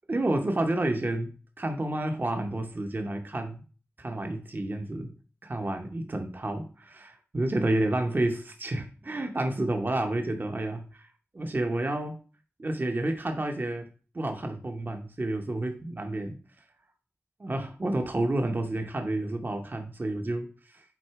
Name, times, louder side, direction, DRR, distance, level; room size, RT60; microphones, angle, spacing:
voice 1, 0.1-3.6 4.0-5.1 5.4-6.6 6.9-11.1 11.3-12.2 12.6-13.9 14.1-16.4 17.4-20.8, right 1 dB, 40° right, 4 dB, 0.8 m, -30 dB
6.0 x 4.0 x 4.6 m, 0.38 s
wide cardioid pair, 85°, 5 cm